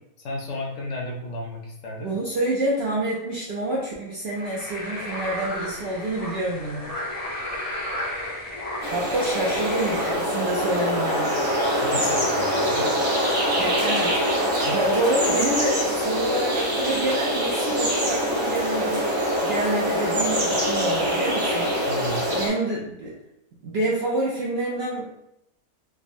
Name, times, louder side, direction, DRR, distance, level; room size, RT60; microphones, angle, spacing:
voice 1, 0.2-2.1 11.7-12.9 21.9-22.4, left 2 dB, 65° left, -1 dB, 0.9 m, -33 dB
voice 2, 2.0-6.9 8.9-11.4 13.6-19.1 19.4-21.8 22.4-23.1 23.6-25.0, right 2 dB, 70° right, -5 dB, 0.6 m, -28 dB
sound 1, 4.3-10.1, left 1 dB, 50° left, 0.4 m, -33 dB
sound 2, 8.8-22.5, equal, 55° right, 1.1 m, -24 dB
3.5 x 2.0 x 2.5 m, 0.83 s
omnidirectional pair, 1.5 m